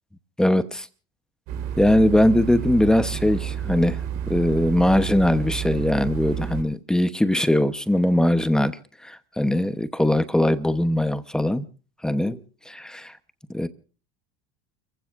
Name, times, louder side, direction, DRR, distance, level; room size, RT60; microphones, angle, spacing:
voice 1, 0.4-0.9 1.8-4.0 4.3-8.8 9.0-11.7 12.0-12.4 12.7-13.1 13.5-13.7, left 1 dB, 5° left, 1.0 m, -21 dB
sound 1, 1.5-6.6, right 9 dB, 65° right, 4.2 m, -30 dB
29.5 x 15.5 x 2.6 m
supercardioid pair, 130°, 17 cm